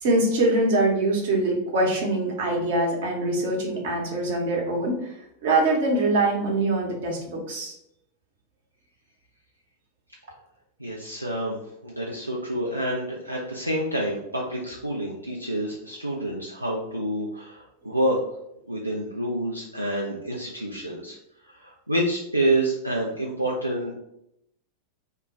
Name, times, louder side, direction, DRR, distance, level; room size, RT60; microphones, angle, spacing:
voice 1, 0.0-5.1 5.4-7.7, right 2 dB, 55° right, -1 dB, 0.8 m, -23 dB
voice 2, 10.8-18.2 18.7-21.2 21.5-24.0, right 1 dB, 85° right, -3 dB, 0.4 m, -28 dB
2.2 x 2.1 x 3.7 m, 0.79 s
figure-of-eight pair, 90°, 0 cm